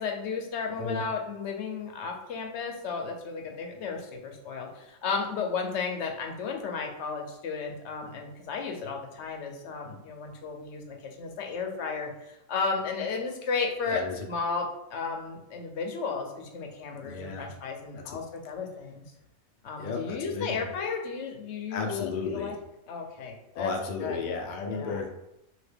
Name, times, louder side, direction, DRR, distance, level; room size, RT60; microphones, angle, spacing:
voice 1, 0.0-14.0 14.3-14.7 14.9-19.0 19.6-22.5 22.9-23.7 24.0-24.2 24.7-25.0, left 5 dB, 65° left, 2 dB, 0.8 m, -34 dB
voice 2, 13.8-14.2 17.0-17.5 18.0-18.2 19.8-20.7 21.7-22.6 23.5-25.1, left 4 dB, 85° left, 2 dB, 0.4 m, -34 dB
2.8 x 2.8 x 3.3 m, 0.87 s
omnidirectional pair, 1.4 m